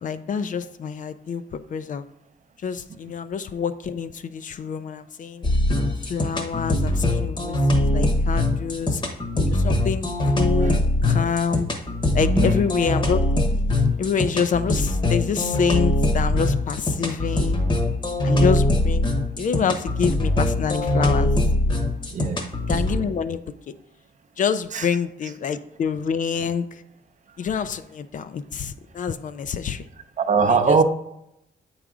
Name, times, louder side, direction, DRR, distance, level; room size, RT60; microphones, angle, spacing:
voice 1, 0.0-2.0 2.6-5.4 6.1-9.0 9.5-11.7 12.1-13.2 14.0-17.6 18.2-19.1 19.4-21.3 22.7-23.4 23.7-23.8 24.4-26.8 27.4-29.9 30.5-30.8, left 6 dB, 50° left, 12 dB, 0.4 m, -27 dB
sound 1, 5.4-23.0, left 1 dB, 30° left, 1.0 m, -22 dB
voice 2, 12.1-12.6 22.1-22.4 24.7-24.9 30.2-30.8, right 5 dB, 45° right, 8 dB, 0.6 m, -21 dB
8.1 x 4.7 x 3.7 m, 0.81 s
wide cardioid pair, 125°, 17 cm